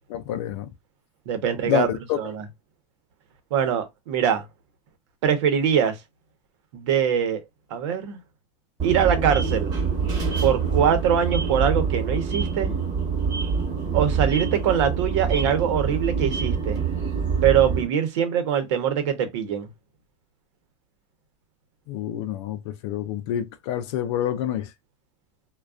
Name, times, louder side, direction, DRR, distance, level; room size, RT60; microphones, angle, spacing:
voice 1, 0.1-0.7 1.7-2.2 21.9-24.7, left 11 dB, 65° left, 0.5 m, -27 dB
voice 2, 1.3-1.9 2.2-2.4 3.5-4.4 5.2-6.0 6.7-7.4 7.7-8.2 8.8-9.7 10.4-12.7 13.9-16.8 17.4-19.7, right 8 dB, 70° right, 0.9 m, -23 dB
sound 1, 8.8-17.9, right 5 dB, 25° right, 1.1 m, -25 dB
2.4 x 2.2 x 2.3 m
supercardioid pair, 120°, 16 cm